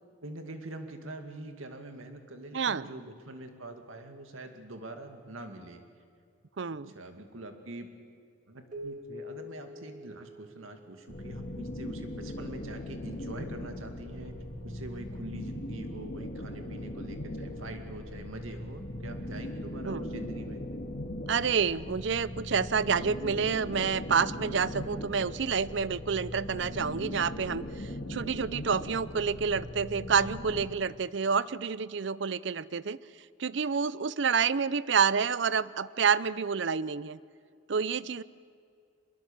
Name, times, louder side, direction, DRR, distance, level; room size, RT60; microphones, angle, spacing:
voice 1, 0.2-5.8 6.9-7.9 8.5-14.3 14.6-20.6, right 2 dB, 85° right, 5 dB, 2.3 m, -44 dB
voice 2, 2.5-2.9 6.6-6.9 19.8-20.1 21.3-33.0 33.4-37.2 37.7-38.2, right 6 dB, 60° right, 18 dB, 0.5 m, -28 dB
Keyboard (musical), 8.7-11.7, left 1 dB, 40° right, 2.5 m, -45 dB
sound 1, 11.1-30.7, left 1 dB, 45° left, 2.3 m, -39 dB
25.0 x 21.5 x 7.3 m, 2.3 s
head